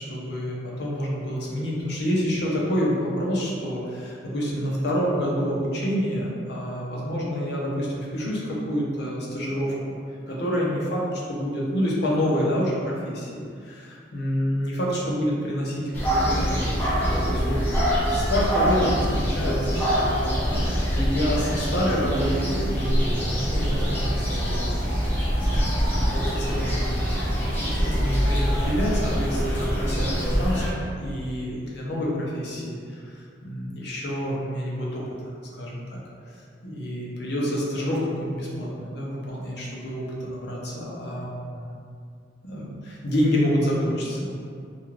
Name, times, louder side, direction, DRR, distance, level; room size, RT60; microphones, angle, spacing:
voice 1, 0.0-10.0 10.3-17.6 18.1-24.7 25.4-35.0 35.5-36.0 36.6-41.7 42.4-44.3, equal, 65° left, -4 dB, 0.6 m, -28 dB
sound 1, 15.9-30.7, equal, 10° left, 0.6 m, -24 dB
2.4 x 2.3 x 3.1 m, 2.2 s
head